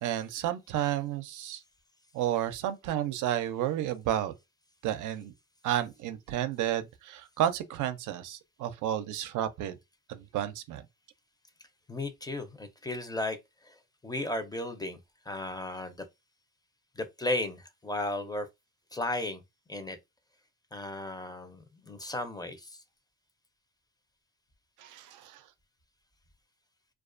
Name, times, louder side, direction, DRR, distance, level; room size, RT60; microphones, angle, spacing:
voice 1, 0.0-1.6 2.1-4.3 4.8-5.3 5.6-9.8 10.1-10.8 24.8-25.4, right 11 dB, 80° right, 0.5 m, -31 dB
voice 2, 11.9-13.4 13.6-13.8 14.0-15.0 15.3-16.0 17.0-18.5 18.9-19.4 19.7-20.0 20.7-22.8, left 2 dB, 15° left, 0.5 m, -35 dB
2.4 x 2.3 x 2.4 m
cardioid pair, 90°, 30 cm